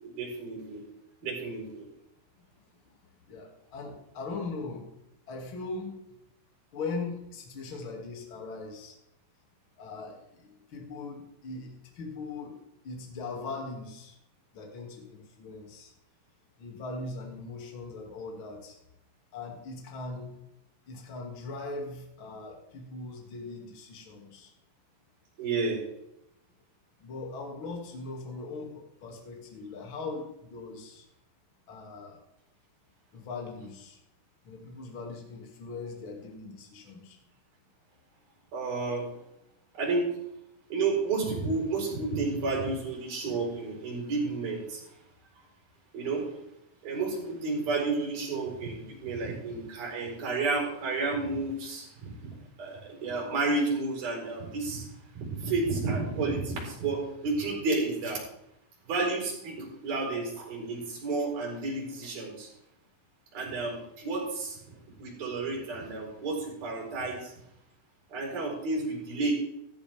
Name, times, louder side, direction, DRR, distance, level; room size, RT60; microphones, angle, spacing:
voice 1, 0.0-0.8 1.2-1.8 25.4-25.8 38.5-39.1 39.8-40.1 40.7-44.8 45.9-46.3 46.8-54.9 55.2-58.2 58.9-62.5 63.3-64.6 65.0-67.3 68.1-69.3, right 3 dB, 45° right, -2 dB, 6.3 m, -31 dB
voice 2, 3.3-4.9 5.3-6.0 6.7-8.9 9.8-12.6 12.8-14.2 14.5-15.9 16.6-18.8 19.3-20.4 20.9-24.5 27.0-31.1 31.7-32.2 33.1-34.0 34.4-37.2 43.2-43.4 52.3-52.4, left 3 dB, 35° left, 0 dB, 2.2 m, -40 dB
14.5 x 14.0 x 3.6 m, 0.81 s
omnidirectional pair, 6.0 m